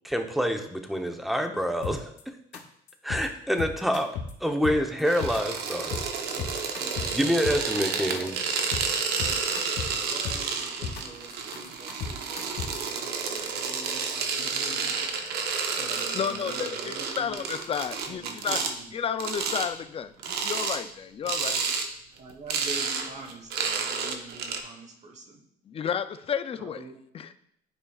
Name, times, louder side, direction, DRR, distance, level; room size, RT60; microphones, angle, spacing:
voice 1, 0.0-2.1 3.0-4.1 4.4-6.0 7.1-8.4, equal, ahead, 5 dB, 0.8 m, -27 dB
sound 1, 1.8-2.2 2.5-2.6 2.9-3.3 3.6-4.3 4.6-5.4 5.7-6.1 6.4-7.8 8.1-8.2 8.5-8.9 9.2-9.9 10.2-11.0 11.3-12.9, left 6 dB, 80° left, 1.1 m, -34 dB
voice 2, 4.7-5.1 6.2-6.5 6.8-7.3 8.0-9.4 9.9-15.1 15.8-17.4 18.0-19.0 21.2-21.7 22.2-25.4 26.5-27.0, right 2 dB, 45° right, 4 dB, 1.2 m, -46 dB
sound 2, 5.0-18.7 19.2-19.7 20.2-20.8 21.3-21.9 22.2-24.6, right 5 dB, 75° right, 0.9 m, -30 dB
voice 3, 16.1-18.6 18.9-21.5 25.7-26.8 27.1-27.3, left 7 dB, 35° left, 10 dB, 0.5 m, -32 dB
11.5 x 5.0 x 2.4 m, 0.70 s
cardioid pair, 110°, 17 cm